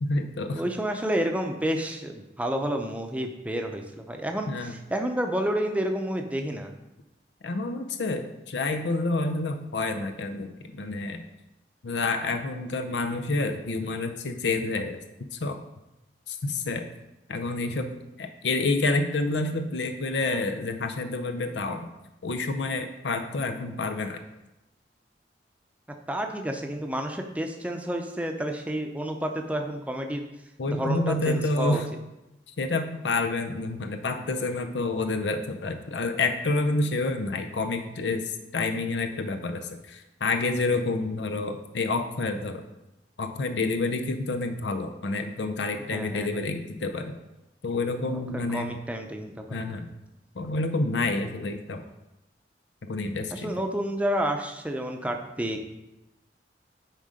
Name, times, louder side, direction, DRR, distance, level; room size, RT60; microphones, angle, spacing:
voice 1, 0.0-0.6 4.5-4.7 7.4-11.2 11.8-15.0 15.3-15.6 16.3-16.9 17.3-21.9 22.2-24.2 30.6-31.9 32.6-42.6 43.2-47.2 47.6-48.8 49.5-49.9 50.4-51.8 52.8-53.5, left 3 dB, 85° left, 7 dB, 0.6 m, -28 dB
voice 2, 0.5-6.7 26.1-30.2 30.7-31.8 45.9-46.4 48.1-49.6 53.3-55.6, right 1 dB, 10° right, 4 dB, 0.6 m, -30 dB
9.4 x 3.8 x 5.0 m, 0.95 s
head